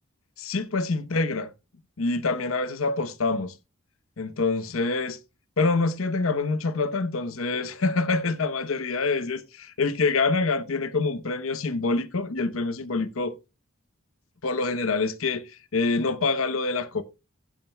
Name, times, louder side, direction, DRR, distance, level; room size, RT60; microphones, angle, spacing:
voice 1, 0.4-1.5 2.0-3.5 4.2-5.2 5.6-13.3 14.4-17.0, left 3 dB, 80° left, 0.9 m, -26 dB
16.0 x 8.7 x 2.2 m
head